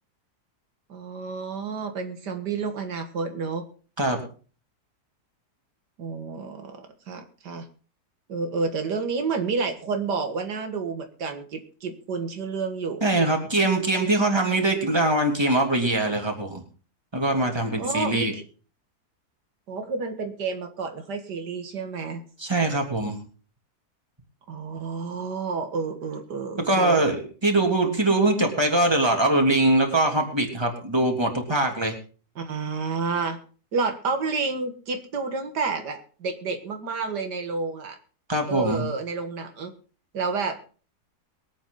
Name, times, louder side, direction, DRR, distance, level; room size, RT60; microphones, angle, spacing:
voice 1, 0.9-3.7 6.0-7.7 8.3-13.0 17.8-18.4 19.7-22.2 24.5-27.1 32.4-33.4 33.7-38.0 38.5-39.7 40.1-40.6, right 4 dB, 85° right, 6 dB, 2.2 m, -30 dB
voice 2, 13.0-16.6 17.1-18.3 22.4-23.2 26.7-31.9 38.3-38.8, right 2 dB, 15° right, 2 dB, 3.1 m, -22 dB
22.5 x 8.7 x 3.9 m, 0.38 s
omnidirectional pair, 1.8 m